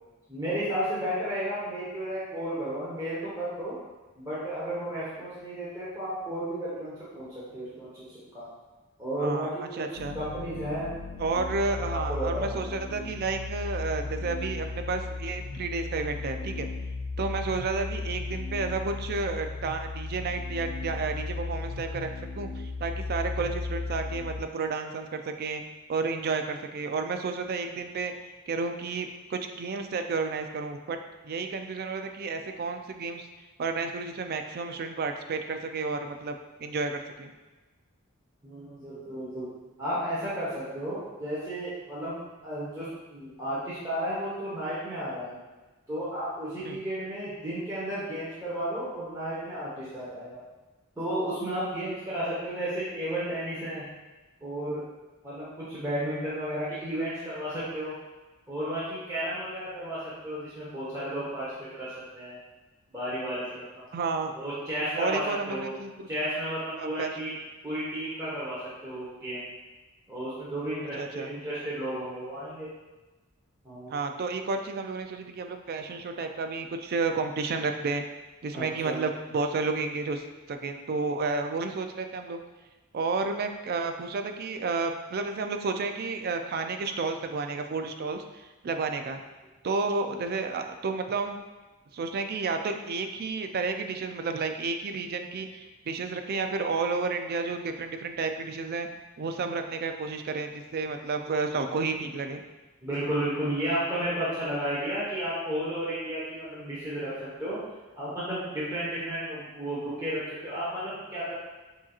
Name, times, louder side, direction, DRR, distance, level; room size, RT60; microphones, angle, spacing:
voice 1, 0.3-3.7 4.2-7.3 7.5-8.5 9.0-9.6 10.1-10.9 11.8-12.7 38.4-39.5 39.8-45.4 45.9-50.4 51.0-53.9 54.4-54.8 55.2-57.9 58.5-62.4 62.9-63.8 64.3-65.2 65.5-65.7 66.1-67.3 67.6-68.6 68.8-69.4 70.1-72.7 73.6-74.0 78.5-79.0 102.8-107.6 108.0-111.3, right 1 dB, 15° right, -10 dB, 1.2 m, -33 dB
voice 2, 9.2-10.1 11.2-16.7 17.2-22.1 22.4-25.6 25.9-28.1 28.5-31.0 31.2-33.3 33.6-37.3 46.6-46.8 63.9-64.3 65.0-66.1 66.8-67.1 71.0-71.3 73.9-78.0 78.4-80.2 80.5-82.4 82.9-89.2 89.6-91.4 91.9-98.9 99.2-102.4, right 4 dB, 50° right, 6 dB, 0.4 m, -31 dB
sound 1, 9.9-24.4, left 3 dB, 65° left, 0.3 m, -36 dB
7.1 x 2.8 x 2.4 m, 1.2 s
head